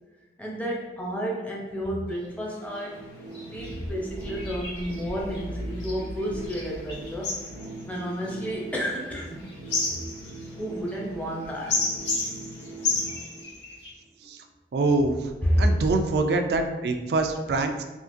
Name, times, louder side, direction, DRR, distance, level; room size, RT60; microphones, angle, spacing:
voice 1, 0.4-3.0 3.5-7.3 7.8-9.4 10.6-11.7 15.4-15.8, equal, 10° left, -3 dB, 0.5 m, -30 dB
sound 1, 1.8-1.9 2.1-2.3 2.7-2.9 3.3-13.9, left 3 dB, 80° left, 1.1 m, -33 dB
sound 2, 2.1-14.0, right 2 dB, 55° left, 1.0 m, -42 dB
voice 2, 14.7-15.3 15.6-17.8, right 3 dB, 65° right, 6 dB, 0.4 m, -24 dB
3.6 x 2.8 x 2.5 m, 1.1 s
head